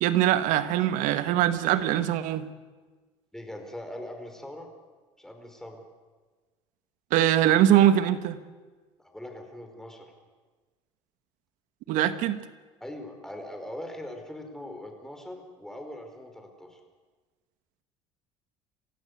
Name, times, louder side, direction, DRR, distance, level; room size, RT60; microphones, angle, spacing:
voice 1, 0.0-2.5 7.1-8.4 11.9-12.4, right 12 dB, 75° right, 11 dB, 1.6 m, -22 dB
voice 2, 3.3-4.7 5.2-5.8 9.0-10.1 12.8-16.8, left 1 dB, 5° left, 4 dB, 4.8 m, -41 dB
27.0 x 15.5 x 8.2 m, 1.4 s
supercardioid pair, 100°, 14 cm